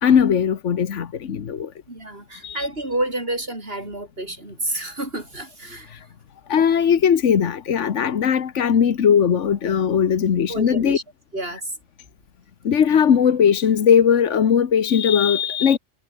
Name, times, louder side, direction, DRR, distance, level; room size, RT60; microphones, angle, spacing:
voice 1, 0.0-1.7 2.4-2.7 6.5-11.0 12.6-15.8, left 7 dB, 80° left, 1.5 m, -18 dB
voice 2, 1.9-5.9 10.5-11.0 11.3-11.7, right 1 dB, 55° right, 6.1 m, -29 dB
omnidirectional pair, 1.2 m